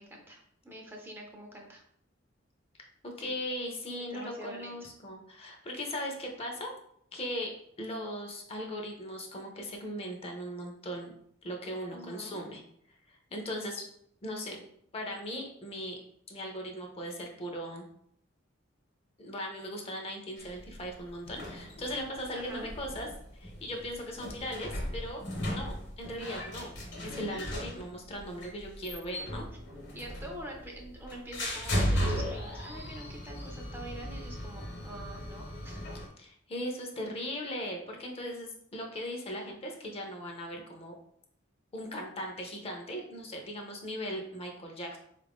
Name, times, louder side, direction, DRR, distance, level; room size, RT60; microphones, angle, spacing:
voice 1, 0.0-1.8 3.2-3.3 4.0-4.9 11.9-12.4 22.3-22.7 29.9-35.8, right 1 dB, 10° right, 0 dB, 0.5 m, -45 dB
voice 2, 2.8-6.7 7.1-11.1 11.4-12.6 13.1-13.9 14.2-14.6 14.9-16.0 16.3-17.9 19.2-23.1 23.3-26.8 27.0-29.5 36.2-40.9 41.7-45.0, equal, 30° left, 2 dB, 0.6 m, -38 dB
sound 1, 20.4-36.1, equal, 65° left, 1.0 m, -37 dB
3.8 x 2.5 x 3.4 m, 0.69 s
head